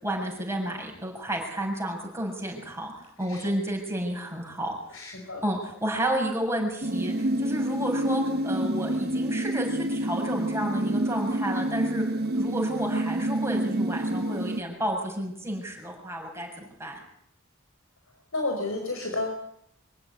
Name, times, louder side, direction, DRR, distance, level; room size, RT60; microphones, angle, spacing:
voice 1, 0.0-2.9 3.2-4.8 5.4-12.0 12.3-17.0, right 1 dB, 15° right, -1 dB, 7.3 m, -31 dB
voice 2, 4.9-5.4 18.3-19.3, left 2 dB, 80° left, 3 dB, 5.0 m, -31 dB
sound 1, 6.8-14.6, right 1 dB, 50° right, 1.3 m, -28 dB
25.5 x 16.0 x 9.8 m, 0.73 s
head